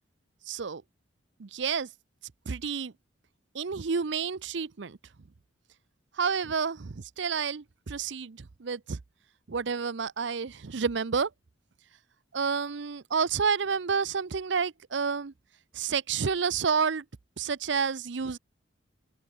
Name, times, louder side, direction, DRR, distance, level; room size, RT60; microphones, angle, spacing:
voice 1, 0.5-0.8 1.4-1.9 2.5-2.9 3.5-5.0 6.1-9.0 9.5-11.3 12.3-15.3 15.7-17.0 17.4-18.4, right 6 dB, 65° right, 0.6 m, -29 dB
head